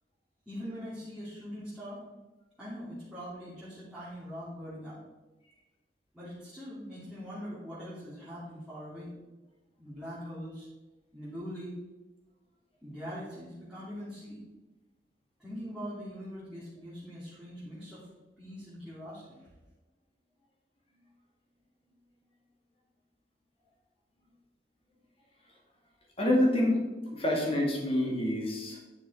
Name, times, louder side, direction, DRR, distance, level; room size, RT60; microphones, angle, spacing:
voice 1, 0.5-2.0 2.6-5.0 6.1-9.1 9.8-10.7 11.1-11.7 12.8-14.4 15.4-18.1 18.4-19.4, equal, 5° right, -12 dB, 2.8 m, -42 dB
voice 2, 26.2-26.8 27.1-28.8, left 1 dB, 35° left, -1 dB, 2.2 m, -27 dB
10.5 x 6.0 x 4.2 m, 1.1 s
head